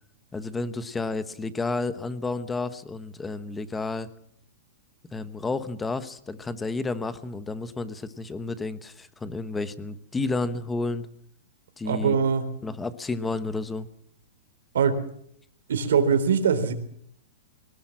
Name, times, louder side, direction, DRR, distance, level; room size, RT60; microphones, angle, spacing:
voice 1, 0.3-4.1 5.1-11.1 11.8-12.2 12.6-13.9, left 3 dB, 10° left, 13 dB, 1.0 m, -31 dB
voice 2, 11.9-12.5 14.7-15.0 15.7-16.7, right 6 dB, 85° right, 9 dB, 3.8 m, -22 dB
22.5 x 19.5 x 7.5 m, 0.68 s
supercardioid pair, 170°, 0 cm